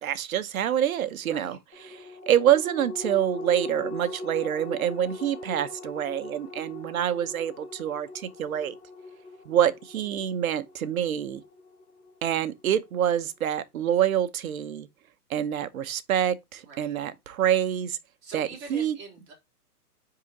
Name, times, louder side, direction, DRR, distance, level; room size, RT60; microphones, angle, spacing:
voice 1, 0.0-1.6 1.9-8.8 9.5-11.4 12.2-14.9 15.3-18.0 18.3-19.0, right 10 dB, 60° right, 1.0 m, -26 dB
voice 2, 1.3-1.6 16.6-17.0 18.2-19.3, right 3 dB, 20° right, 3.2 m, -44 dB
sound 1, 1.7-12.5 12.9-13.0, left 2 dB, 10° left, 1.2 m, -40 dB
9.9 x 3.8 x 2.8 m
hypercardioid pair, 155°, 48 cm